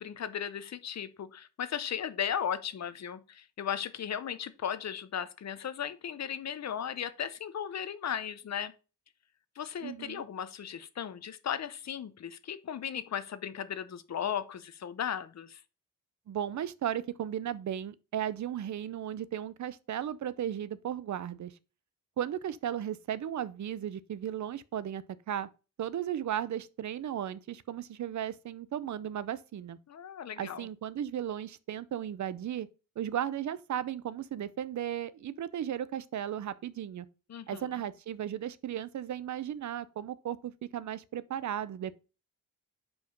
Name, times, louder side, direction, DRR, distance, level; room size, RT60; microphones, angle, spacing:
voice 1, 0.0-8.7 9.6-15.6 29.9-30.7 37.3-37.7, left 8 dB, 50° left, 0.7 m, -36 dB
voice 2, 9.8-10.2 16.3-21.5 22.2-25.5 25.8-29.8 30.4-32.7 33.0-37.1 37.5-41.9, right 10 dB, 55° right, 0.5 m, -35 dB
5.2 x 4.8 x 5.2 m
wide cardioid pair, 150°, 34 cm